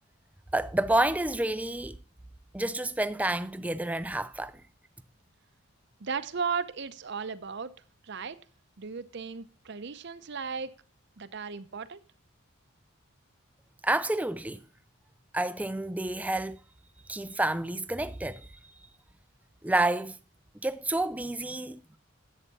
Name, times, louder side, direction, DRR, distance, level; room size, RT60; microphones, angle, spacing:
voice 1, 0.5-2.0 2.5-4.5 13.8-14.6 15.3-16.6 17.1-18.5 19.6-20.2 20.6-21.8, right 2 dB, 5° right, 0.4 m, -29 dB
voice 2, 6.0-7.7 8.0-8.4 8.8-10.7 11.2-12.0, right 5 dB, 55° right, 0.7 m, -35 dB
11.0 x 8.1 x 4.1 m
head